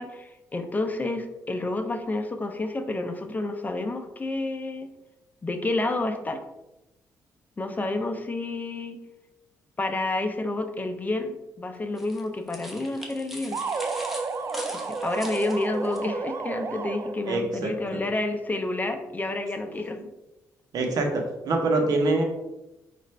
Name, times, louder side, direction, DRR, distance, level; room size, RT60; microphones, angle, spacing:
voice 1, 0.0-4.9 5.4-6.4 7.6-9.0 9.8-13.6 14.7-20.0, left 2 dB, 25° left, 6 dB, 0.5 m, -29 dB
sound 1, 12.0-16.0, equal, ahead, 0.9 m, -41 dB
sound 2, 13.5-17.4, right 4 dB, 40° right, 0.3 m, -32 dB
voice 2, 17.3-18.0 20.7-22.2, right 2 dB, 70° right, 3 dB, 0.9 m, -25 dB
5.2 x 2.5 x 3.2 m, 0.97 s
cardioid pair, 85°, 7 cm